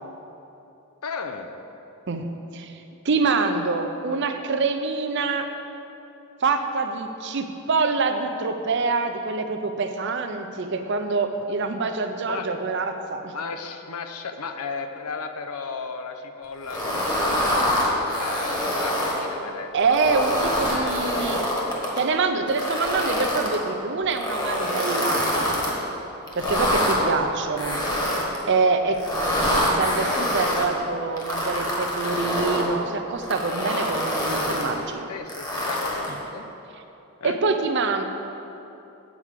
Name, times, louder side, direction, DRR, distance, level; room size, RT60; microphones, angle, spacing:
voice 1, 1.0-1.5 12.2-12.5 13.2-19.7 20.7-21.3 26.4-26.9 30.5-30.7 33.9-34.0 35.1-36.5 37.2-37.4, left 5 dB, 85° left, 7 dB, 0.6 m, -35 dB
voice 2, 3.0-5.5 6.4-13.3 19.7-21.4 22.0-25.6 26.4-27.8 28.5-29.0 29.4-35.0 37.2-38.0, right 4 dB, 55° right, 7 dB, 0.5 m, -25 dB
sound 1, 16.6-19.2 19.8-22.0 22.5-23.6 24.1-25.7 26.3-27.0 27.6-28.4 28.9-30.6 31.2-32.7 33.2-34.7 35.3-36.2, left 1 dB, 20° left, 1.3 m, -25 dB
8.3 x 4.8 x 7.3 m, 2.9 s
head